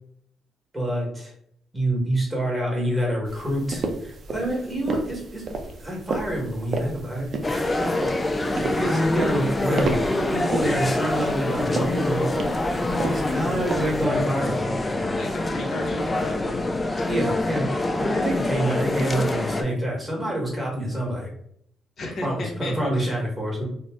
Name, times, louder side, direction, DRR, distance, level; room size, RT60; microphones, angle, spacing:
voice 1, 0.7-1.3 1.7-5.4 5.8-7.7 8.8-12.3 12.9-14.7 17.1-17.6 18.0-21.3 22.2-23.6, right 1 dB, 10° right, -2 dB, 1.1 m, -27 dB
sound 1, 3.3-14.1, right 3 dB, 50° right, 0.4 m, -33 dB
sound 2, 7.4-19.6, left 2 dB, 20° left, 0.3 m, -25 dB
voice 2, 15.1-16.6 17.1-17.4 22.0-23.2, left 2 dB, 55° left, 1 dB, 0.7 m, -34 dB
2.5 x 2.0 x 3.4 m, 0.68 s
cardioid pair, 90°, 0 cm